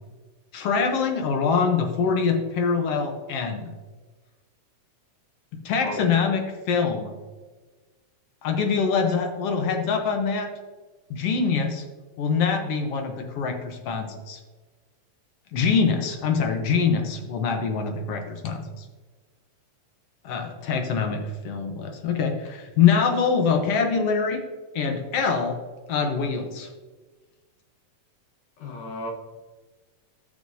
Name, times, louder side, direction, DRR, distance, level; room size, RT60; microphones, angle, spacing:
voice 1, 0.5-3.7 5.6-7.1 8.4-10.5 11.1-11.8 12.2-14.4 15.5-18.6 20.2-24.4 24.7-25.6 25.9-26.7, left 5 dB, 65° left, 4 dB, 1.7 m, -24 dB
voice 2, 5.8-6.1 28.6-29.1, left 2 dB, 90° left, 0 dB, 2.9 m, -33 dB
13.5 x 6.3 x 2.7 m, 1.3 s
omnidirectional pair, 3.4 m